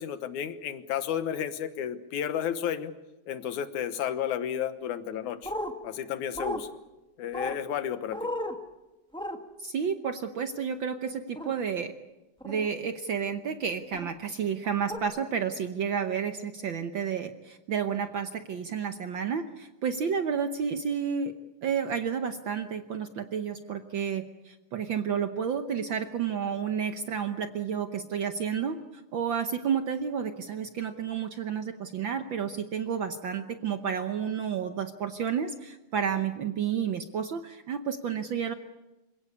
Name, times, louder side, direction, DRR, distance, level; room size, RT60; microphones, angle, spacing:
voice 1, 0.0-2.9 3.3-5.5 5.8-6.7 7.2-8.3, left 9 dB, 75° left, 11 dB, 2.6 m, -32 dB
sound 1, 5.4-5.7 6.4-6.6 7.3-7.6 8.1-8.6 9.1-9.4 11.4-11.5 12.4-12.7 13.9-14.1 14.9-15.0, equal, 5° left, 0.4 m, -34 dB
voice 2, 9.6-11.9 12.4-21.3 21.6-28.8 29.1-38.5, right 7 dB, 75° right, 8 dB, 1.1 m, -31 dB
27.0 x 17.0 x 8.6 m, 1.0 s
omnidirectional pair, 3.5 m